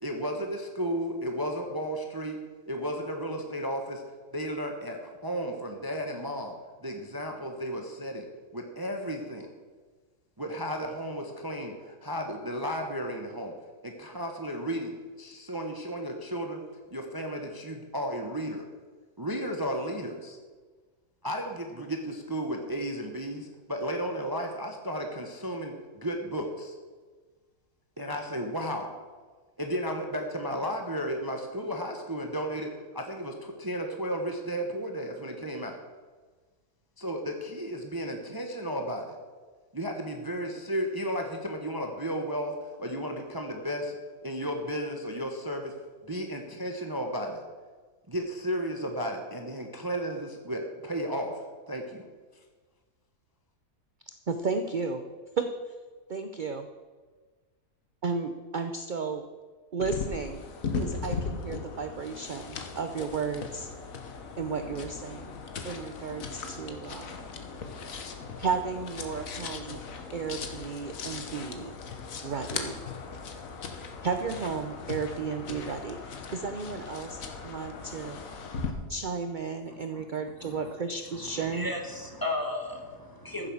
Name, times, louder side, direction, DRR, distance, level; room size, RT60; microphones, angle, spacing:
voice 1, 0.0-2.4 2.7-4.0 4.3-6.5 6.8-8.3 8.5-9.5 10.4-13.5 13.8-14.9 15.2-16.6 16.9-18.7 19.2-20.4 21.2-26.7 28.0-28.9 29.6-35.8 37.0-39.2 39.7-42.5 42.8-44.0 44.2-45.7 46.0-47.4 48.1-52.0, equal, 15° right, 3 dB, 1.0 m, -33 dB
voice 2, 54.3-55.0 55.4-55.7 56.1-56.7 58.0-59.2 59.7-60.4 60.8-63.7 64.4-65.3 65.6-67.2 68.4-69.8 70.1-71.8 72.2-72.8 74.0-78.2 78.9-81.7, right 5 dB, 50° right, 7 dB, 0.6 m, -33 dB
sound 1, 59.8-78.7, left 5 dB, 60° left, 1.6 m, -38 dB
voice 3, 80.4-80.7 81.2-83.5, left 2 dB, 15° left, 2 dB, 1.8 m, -35 dB
14.5 x 7.4 x 7.2 m, 1.4 s
omnidirectional pair, 1.7 m